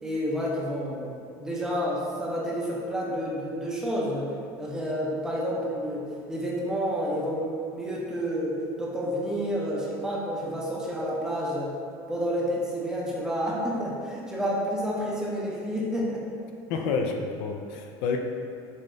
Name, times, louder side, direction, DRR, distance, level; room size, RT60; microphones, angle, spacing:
voice 1, 0.0-4.3 4.6-11.8 12.1-16.2 16.7-16.9, equal, 5° right, -5 dB, 0.5 m, -30 dB
voice 2, 16.7-18.2, left 5 dB, 70° left, 3 dB, 0.4 m, -29 dB
5.5 x 3.3 x 2.5 m, 2.5 s
cardioid pair, 165°, 10 cm